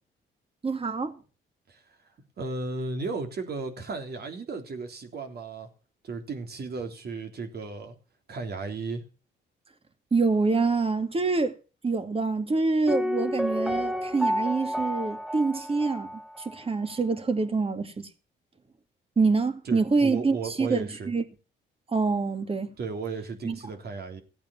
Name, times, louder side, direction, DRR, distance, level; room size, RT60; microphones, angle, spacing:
voice 1, 0.6-1.2 10.1-11.6 11.8-18.1 19.2-21.2 21.9-22.7 23.4-23.6, right 4 dB, 30° right, 2.2 m, -26 dB
voice 2, 2.4-5.7 6.0-7.9 8.3-9.0 19.6-21.1 22.8-24.2, right 4 dB, 55° right, 3.4 m, -35 dB
Piano, 12.9-16.6 16.9-17.0, equal, ahead, 1.1 m, -30 dB
15.5 x 8.5 x 7.2 m
cardioid pair, 90°, 20 cm